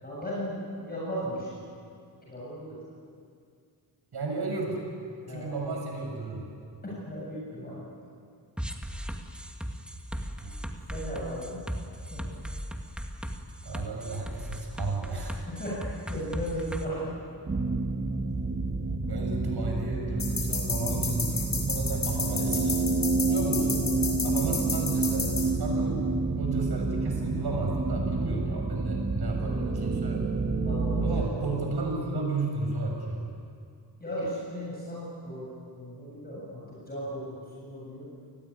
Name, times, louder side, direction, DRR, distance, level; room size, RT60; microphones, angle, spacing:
voice 1, 0.0-1.6 2.2-2.8 5.3-5.8 6.8-7.9 10.9-11.7 12.1-12.4 15.5-17.1 19.0-19.1 29.4-29.7 30.6-31.5 34.0-35.5 35.8-38.0, equal, 20° left, -7 dB, 7.7 m, -36 dB
voice 2, 4.1-4.8 5.3-6.5 10.4-10.5 13.6-15.4 19.1-22.8 23.3-23.8 24.2-26.1 26.4-30.2 31.0-33.3, right 3 dB, 65° right, 1 dB, 6.8 m, -33 dB
sound 1, 8.6-16.8, equal, ahead, 1.9 m, -36 dB
sound 2, 17.5-31.2, right 3 dB, 30° right, 1.8 m, -29 dB
sound 3, 20.2-25.4, left 5 dB, 65° left, 6.0 m, -31 dB
29.5 x 19.5 x 9.7 m, 2.3 s
wide cardioid pair, 155°, 42 cm